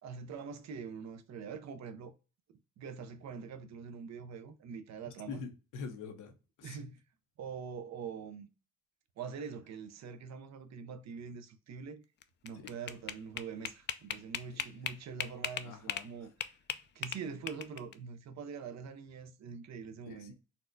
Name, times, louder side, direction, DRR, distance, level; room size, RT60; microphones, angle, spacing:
voice 1, 0.0-2.1 2.8-5.4 6.6-7.0 7.4-8.5 9.2-12.0 12.4-16.3 16.9-20.3, right 6 dB, 60° right, 0.6 m, -44 dB
voice 2, 5.3-6.3 6.6-6.8 12.6-12.7 14.5-14.7 15.6-16.1 20.1-20.3, left 5 dB, 90° left, 0.8 m, -44 dB
sound 1, 12.2-16.1 16.4-17.9, left 8 dB, 40° left, 0.4 m, -38 dB
4.1 x 2.2 x 2.5 m
cardioid pair, 90°, 30 cm